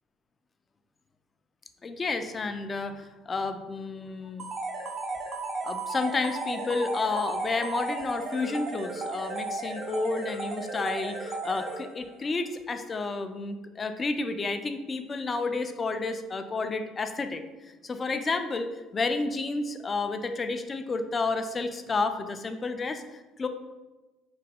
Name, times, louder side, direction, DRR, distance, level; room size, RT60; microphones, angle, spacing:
voice 1, 1.8-4.4 5.6-18.7 18.9-23.5, left 3 dB, 30° left, 8 dB, 0.3 m, -31 dB
sound 1, 4.4-12.2, right 3 dB, 45° right, 0.5 m, -35 dB
3.2 x 2.1 x 3.4 m, 1.1 s
supercardioid pair, 85°, 0 cm